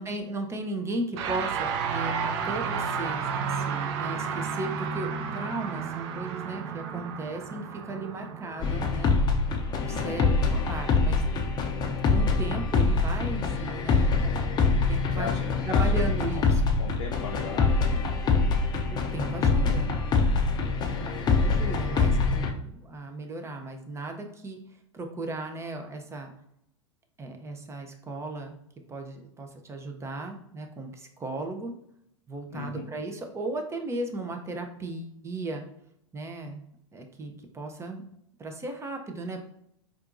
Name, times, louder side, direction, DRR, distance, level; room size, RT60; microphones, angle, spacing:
voice 1, 0.0-9.2 9.8-14.4 14.9-15.3 15.6-16.8 18.9-20.0 20.8-24.6 24.9-26.3 27.2-28.6 28.9-31.7 32.3-35.6 36.1-36.6 36.9-38.0 38.4-39.5, right 2 dB, 15° right, 4 dB, 0.6 m, -36 dB
sound 1, 1.1-10.6, right 6 dB, 55° right, 0.5 m, -32 dB
sound 2, 8.6-22.5, left 4 dB, 25° left, 0.5 m, -25 dB
voice 2, 9.9-10.2 15.1-16.4 16.8-17.7 32.5-32.9, left 5 dB, 85° left, 0 dB, 0.5 m, -37 dB
4.4 x 2.5 x 2.6 m, 0.75 s
hypercardioid pair, 95°, 16 cm